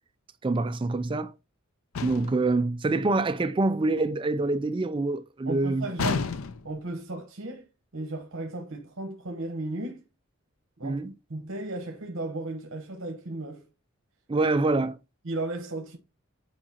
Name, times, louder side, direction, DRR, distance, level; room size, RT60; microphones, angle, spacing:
voice 1, 0.4-1.3 2.0-5.9 10.8-11.1 14.3-15.0, right 2 dB, 25° right, 0.3 m, -26 dB
sound 1, 2.0-2.5 6.0-6.8, left 5 dB, 75° left, 0.5 m, -30 dB
voice 2, 5.5-6.4 6.6-7.7 7.9-10.0 10.8-11.0 11.3-13.7 15.2-16.0, right 2 dB, 65° right, 1.1 m, -35 dB
8.8 x 4.8 x 2.9 m
head